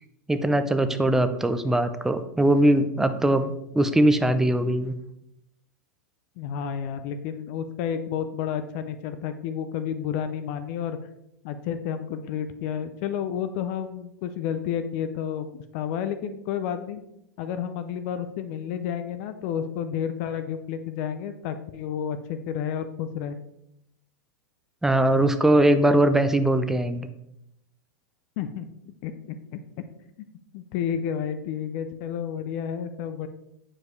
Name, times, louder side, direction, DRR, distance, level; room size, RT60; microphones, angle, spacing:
voice 1, 0.3-4.9 24.8-27.1, right 1 dB, 5° right, 9 dB, 0.5 m, -21 dB
voice 2, 6.4-11.0 11.4-17.0 17.4-23.4 28.4-28.7 29.0-29.6 30.5-33.3, left 8 dB, 45° left, 10 dB, 0.5 m, -31 dB
7.3 x 4.6 x 3.2 m, 0.81 s
hypercardioid pair, 105°, 11 cm